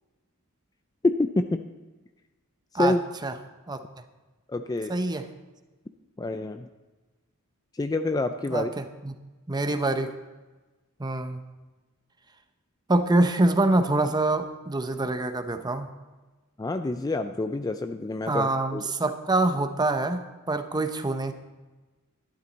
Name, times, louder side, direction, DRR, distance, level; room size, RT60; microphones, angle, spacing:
voice 1, 1.0-1.7 2.7-3.0 4.5-5.0 6.2-6.7 7.8-8.7 16.6-18.8, left 2 dB, 15° left, 8 dB, 0.3 m, -27 dB
voice 2, 4.9-5.2 8.5-9.1 9.5-10.1 11.0-11.4 12.9-15.9 18.3-21.3, right 2 dB, 20° right, 8 dB, 0.7 m, -25 dB
12.5 x 11.5 x 4.0 m, 1.2 s
head